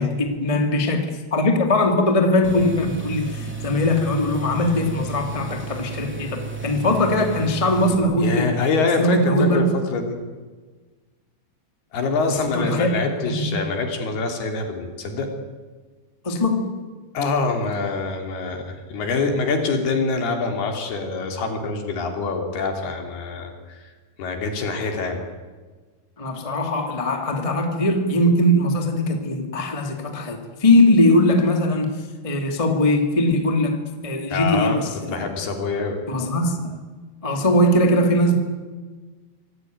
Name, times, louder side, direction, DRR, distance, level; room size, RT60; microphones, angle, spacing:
voice 1, 0.0-8.5 9.0-9.6 12.5-12.9 13.2-13.5 16.2-16.8 26.2-32.0 32.2-35.2 36.1-36.8 37.2-38.4, left 1 dB, 15° left, 4 dB, 1.1 m, -20 dB
sound 1, 2.4-7.9, right 5 dB, 5° right, 1.5 m, -33 dB
voice 2, 8.2-9.7 9.9-10.2 11.9-15.3 17.1-23.9 24.2-25.2 34.3-34.8 35.1-36.0, left 4 dB, 60° left, 4 dB, 4.7 m, -25 dB
25.5 x 17.5 x 9.4 m, 1.4 s
omnidirectional pair, 5.4 m